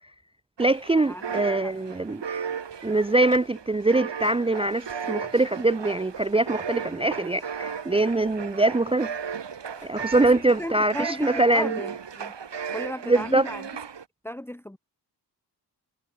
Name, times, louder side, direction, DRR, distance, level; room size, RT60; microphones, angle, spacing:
voice 1, 0.6-2.2 2.8-9.1 9.8-11.7 13.1-13.5, right 2 dB, 15° right, 0.5 m, -23 dB
sound 1, 0.6-14.0, right 6 dB, 85° right, 4.9 m, -35 dB
voice 2, 10.3-12.3 12.7-13.6 14.2-14.8, equal, 5° left, 1.3 m, -35 dB
wide cardioid pair, 125°, 42 cm